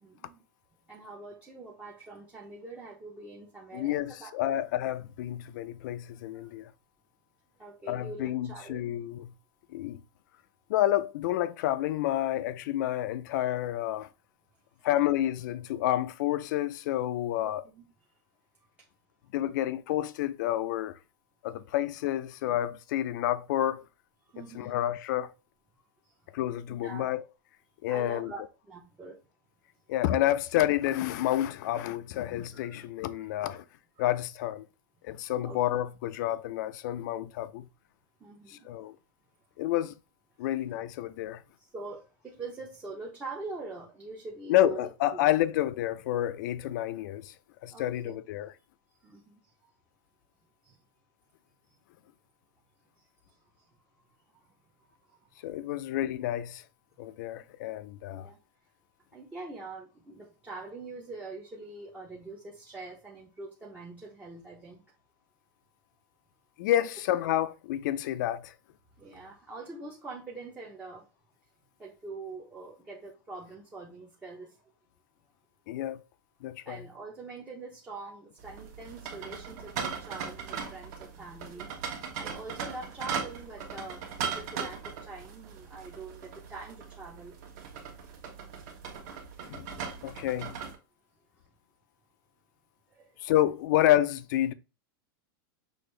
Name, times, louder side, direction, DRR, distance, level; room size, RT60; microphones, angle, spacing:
voice 1, 0.0-0.4 0.9-4.6 6.3-6.5 7.6-9.0 14.8-14.9 17.4-17.9 24.3-24.8 26.0-26.1 26.7-27.1 27.9-29.2 32.5-32.9 33.1-33.3 34.0-34.1 35.4-35.6 38.2-38.7 41.6-45.3 47.7-48.1 49.0-49.5 50.6-50.8 53.0-53.7 54.3-55.5 57.4-57.5 58.1-58.4 59.1-64.8 69.0-71.1 71.8-74.6 76.7-81.7 82.2-87.4 87.9-88.0 92.9-93.3, right 3 dB, 10° right, 0.6 m, -44 dB
voice 2, 3.7-6.7 7.9-9.3 9.7-10.0 10.7-14.1 14.8-17.6 19.3-21.0 21.4-23.8 24.5-25.3 26.3-27.2 27.8-28.3 29.9-33.7 34.0-34.7 35.0-37.7 38.5-39.0 39.6-39.9 40.4-41.4 44.5-47.3 47.6-48.5 55.4-56.6 57.0-58.3 66.6-68.5 75.7-76.0 76.4-76.8 89.5-90.6 93.2-94.5, left 13 dB, 55° left, 0.4 m, -29 dB
sound 1, 78.4-90.7, right 6 dB, 50° right, 1.1 m, -39 dB
6.2 x 2.5 x 3.1 m
supercardioid pair, 165°, 12 cm